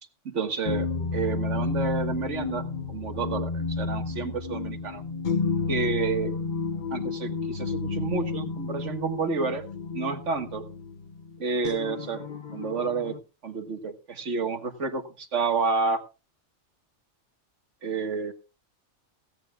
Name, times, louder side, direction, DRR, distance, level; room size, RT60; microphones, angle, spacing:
voice 1, 0.3-5.0 5.7-6.4 6.9-9.7 9.9-10.7 11.4-12.2 12.5-16.0 17.8-18.3, right 4 dB, 85° right, 7 dB, 1.9 m, -30 dB
sound 1, 0.7-13.2, left 4 dB, 45° left, 1.0 m, -31 dB
16.5 x 16.0 x 2.3 m, 0.31 s
omnidirectional pair, 1.2 m